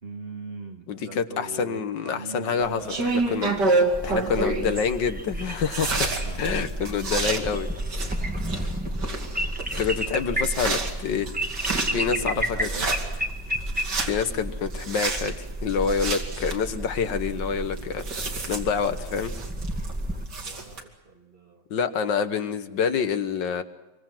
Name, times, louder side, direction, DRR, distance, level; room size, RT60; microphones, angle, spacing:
voice 1, 0.0-4.9 5.8-6.8 8.2-8.7 11.7-13.1 15.9-16.1 20.4-21.6, right 3 dB, 30° right, 3 dB, 2.0 m, -41 dB
voice 2, 0.9-2.9 3.3-3.5 4.0-7.7 9.8-11.3 11.9-12.7 14.1-18.0 18.5-19.3 21.7-23.6, left 6 dB, 70° left, 10 dB, 1.8 m, -27 dB
sound 1, 2.6-20.8, right 3 dB, 65° right, 3.1 m, -30 dB
sound 2, 3.9-20.2, right 1 dB, 5° right, 1.1 m, -32 dB
26.5 x 23.5 x 6.1 m, 1.1 s
omnidirectional pair, 2.0 m